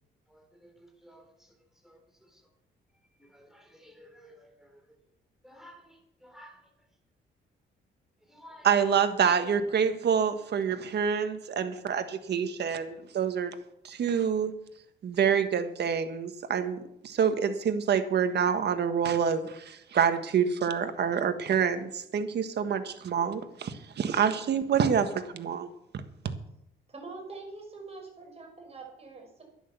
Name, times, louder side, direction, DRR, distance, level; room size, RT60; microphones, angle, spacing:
voice 1, 0.3-1.5 1.8-2.4 3.2-4.8 5.4-6.6 8.3-8.8, equal, ahead, 3.9 m, -54 dB
voice 2, 8.6-13.5 13.8-14.5 15.0-25.7, right 7 dB, 55° right, 1.6 m, -27 dB
voice 3, 26.9-29.4, right 3 dB, 30° right, 5.7 m, -44 dB
11.0 x 10.0 x 7.0 m
cardioid pair, 90°, 20 cm